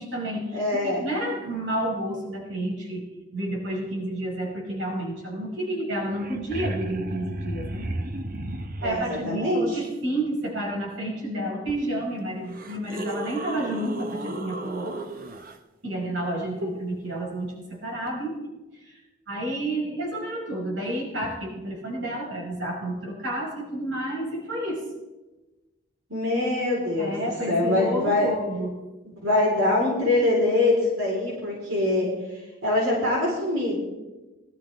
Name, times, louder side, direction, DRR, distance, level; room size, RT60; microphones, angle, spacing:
voice 1, 0.0-7.8 8.8-15.0 15.8-18.3 18.7-24.8 27.0-28.7, right 1 dB, 65° right, -2 dB, 5.0 m, -30 dB
voice 2, 0.5-1.0 8.8-9.8 16.6-16.7 26.1-27.1 27.5-28.3 29.2-33.8, left 2 dB, 85° right, -3 dB, 4.0 m, -24 dB
sound 1, 5.8-5.9 6.1-9.2 11.7-11.8 12.4-15.5 18.1-18.2, right 1 dB, 45° right, 0.9 m, -34 dB
20.5 x 12.5 x 3.5 m, 1.1 s
head